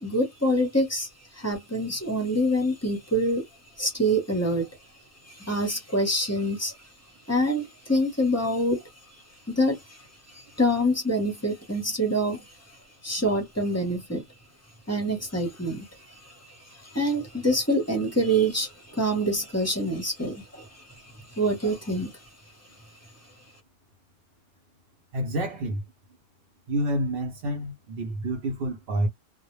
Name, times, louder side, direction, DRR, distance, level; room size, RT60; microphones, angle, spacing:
voice 1, 0.0-1.1 1.4-3.4 3.8-4.7 5.3-6.7 7.3-8.8 9.5-10.0 10.6-12.4 13.0-14.2 14.9-15.9 16.2-16.3 16.8-20.8 21.3-22.1, equal, 15° left, 0.6 m, -25 dB
voice 2, 25.1-25.8 26.7-29.1, right 1 dB, 60° right, 0.7 m, -28 dB
2.1 x 2.1 x 3.0 m
omnidirectional pair, 1.3 m